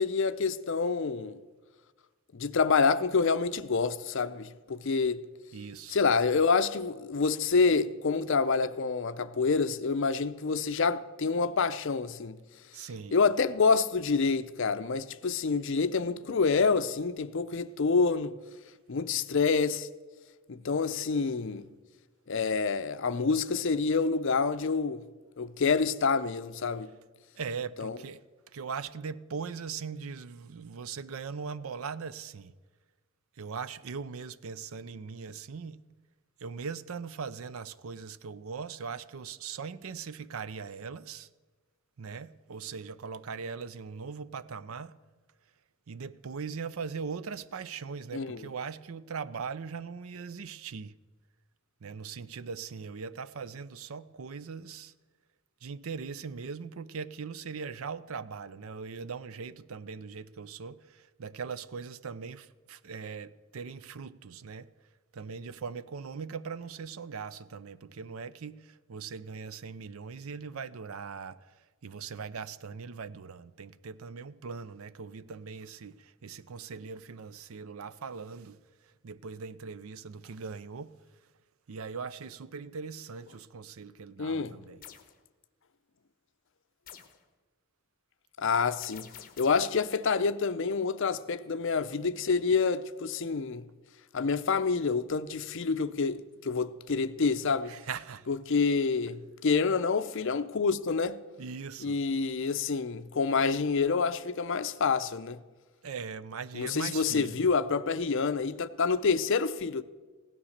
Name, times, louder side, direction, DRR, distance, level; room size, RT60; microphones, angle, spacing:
voice 1, 0.0-1.4 2.3-5.2 5.9-12.4 13.1-18.3 18.9-19.9 20.5-21.7 22.3-25.0 25.4-26.9 27.8-28.0 48.1-48.5 84.2-84.6 88.4-89.1 89.4-93.7 94.1-97.7 98.3-101.2 101.8-105.4 106.5-109.8, left 4 dB, 60° left, 0.6 m, -27 dB
voice 2, 5.5-6.0 12.7-13.2 27.4-28.2 28.5-32.5 33.4-35.8 36.4-41.3 42.0-44.9 45.9-50.9 51.8-54.9 55.6-64.7 65.1-71.4 71.8-78.6 79.0-80.9 81.7-84.8 97.7-98.3 101.4-102.0 105.8-107.4, right 5 dB, 75° right, 0.5 m, -40 dB
sound 1, 84.8-85.1 86.9-87.2 88.8-89.7, left 9 dB, 45° left, 1.1 m, -48 dB
16.0 x 10.0 x 6.5 m
head